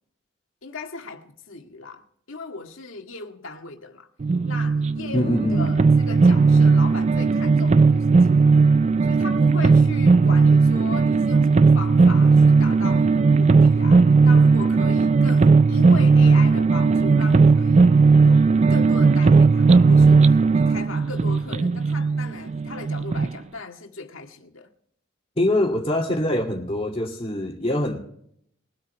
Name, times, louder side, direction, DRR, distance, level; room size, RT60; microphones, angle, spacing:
voice 1, 0.6-4.1 4.4-8.7 9.0-17.9 18.2-24.7, left 3 dB, 80° left, 1.9 m, -38 dB
sound 1, 4.2-23.3, right 4 dB, 35° right, 0.4 m, -17 dB
voice 2, 5.1-5.7 25.4-28.0, left 1 dB, 30° left, 2.5 m, -23 dB
22.5 x 8.7 x 3.4 m
head